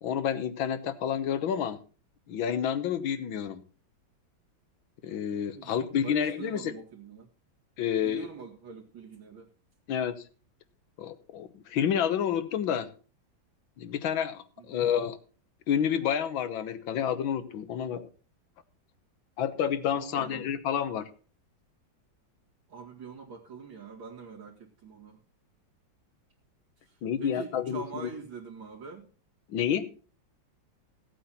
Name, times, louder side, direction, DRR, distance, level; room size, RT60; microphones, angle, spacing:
voice 1, 0.0-1.8 2.3-3.6 5.0-6.7 7.8-8.3 9.9-10.2 11.0-12.9 13.8-15.2 15.7-18.1 19.4-21.1 27.0-28.1 29.5-29.9, left 8 dB, 85° left, 1.8 m, -29 dB
voice 2, 5.5-7.3 8.0-9.5 14.6-14.9 19.9-20.4 22.7-25.2 26.8-29.1, right 5 dB, 75° right, 2.9 m, -44 dB
16.5 x 8.4 x 4.3 m
omnidirectional pair, 2.1 m